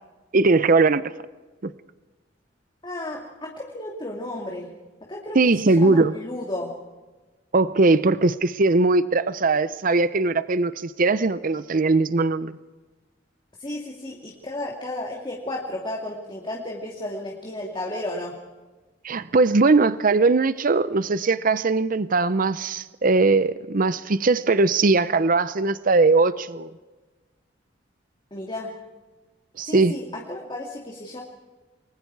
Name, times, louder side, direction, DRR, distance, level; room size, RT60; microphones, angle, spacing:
voice 1, 0.3-1.0 1.6-1.7 5.3-6.1 7.5-12.5 19.0-26.7 29.6-30.0, right 3 dB, 50° right, 15 dB, 0.7 m, -20 dB
voice 2, 2.8-4.7 5.1-6.7 13.6-18.4 28.3-28.7 29.6-31.2, left 1 dB, 25° left, -1 dB, 2.5 m, -33 dB
29.0 x 21.5 x 4.7 m, 1.2 s
head